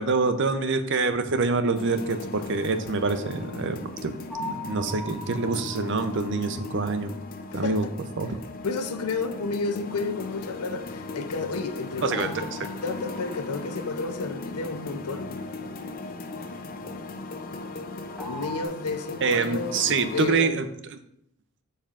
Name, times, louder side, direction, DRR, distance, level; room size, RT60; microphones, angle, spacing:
voice 1, 0.0-4.1 4.4-7.1 7.5-7.9 8.2-8.4 12.0-12.3 19.2-20.7, right 4 dB, 55° right, 0.6 m, -26 dB
sound 1, 1.8-20.3, left 3 dB, 40° left, 0.5 m, -38 dB
sound 2, 4.3-7.3 12.1-14.3 18.2-18.7, left 1 dB, ahead, 0.8 m, -41 dB
voice 2, 7.5-7.9 8.6-12.5 12.8-15.3 18.2-20.7, left 3 dB, 85° left, 0.6 m, -31 dB
8.6 x 5.5 x 2.5 m
head